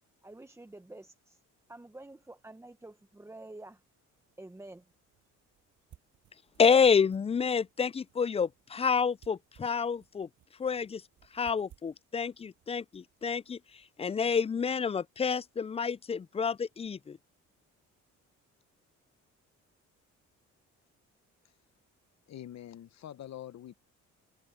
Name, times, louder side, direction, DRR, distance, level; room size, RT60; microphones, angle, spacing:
voice 1, 0.2-1.4 1.7-3.8 4.4-4.8, right 2 dB, 10° right, 0.9 m, -48 dB
sound 1, 4.1-14.0, right 11 dB, 75° right, 6.8 m, -64 dB
voice 2, 6.6-10.3 10.6-11.0 11.3-13.6 14.0-17.2, left 6 dB, 20° left, 0.3 m, -28 dB
voice 3, 22.3-23.7, left 11 dB, 60° left, 0.9 m, -45 dB
cardioid pair, 90°, 30 cm